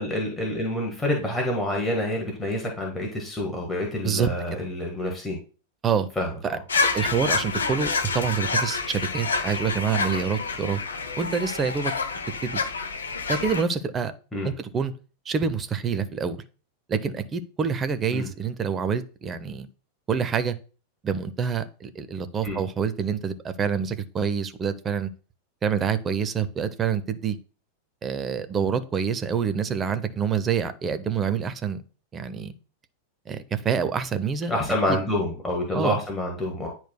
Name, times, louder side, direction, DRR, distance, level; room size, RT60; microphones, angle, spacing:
voice 1, 0.0-5.4 6.1-6.6 14.3-14.5 18.1-18.3 22.4-22.6 34.5-36.7, left 1 dB, 10° left, -1 dB, 1.6 m, -27 dB
sound 1, 6.7-13.6, left 4 dB, 70° left, 0.8 m, -28 dB
voice 2, 6.9-10.8 11.2-11.9 12.4-12.6 13.3-14.1 14.4-14.9 15.3-16.4 16.9-19.7 20.1-20.6 21.0-25.1 25.6-27.4 28.0-31.8 32.1-32.5 33.3-34.5 34.9-35.0 35.7-36.0, right 6 dB, 20° right, 11 dB, 0.7 m, -26 dB
10.0 x 4.4 x 2.3 m, 0.38 s
figure-of-eight pair, 90°, 0 cm